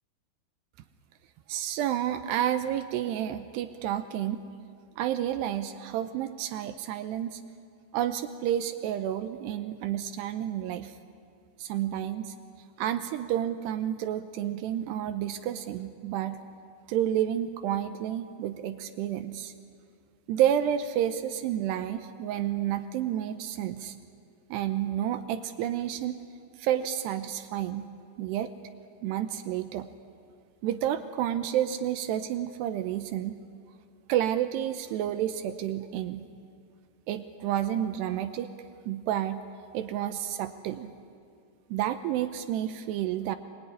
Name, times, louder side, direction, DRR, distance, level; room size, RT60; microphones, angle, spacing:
voice 1, 1.5-4.4 5.0-7.4 7.9-10.9 11.6-12.3 12.8-16.4 16.9-19.5 20.3-24.0 24.5-26.2 26.6-27.9 28.2-28.5 29.0-29.9 30.6-33.4 34.1-36.3 37.1-38.5 38.9-39.4 39.7-40.9 41.7-43.4, right 11 dB, 80° right, 10 dB, 2.5 m, -30 dB
25.0 x 22.0 x 9.8 m, 2.3 s
omnidirectional pair, 5.6 m